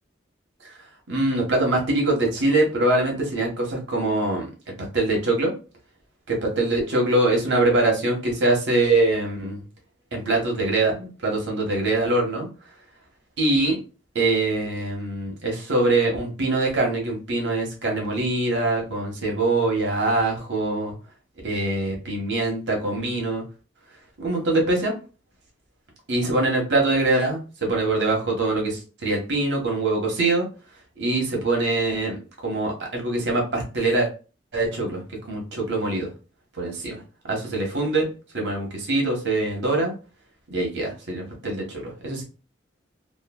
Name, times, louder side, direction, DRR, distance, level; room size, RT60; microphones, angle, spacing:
voice 1, 1.1-4.5 4.8-5.5 6.3-9.6 10.1-12.5 13.4-13.8 14.1-20.9 21.4-23.4 24.2-24.9 26.1-30.5 31.0-34.1 34.5-36.1 36.6-37.0 37.3-38.1 38.3-39.9 40.5-42.2, right 2 dB, 80° right, 0 dB, 1.0 m, -23 dB
3.0 x 2.3 x 2.2 m, 0.33 s
head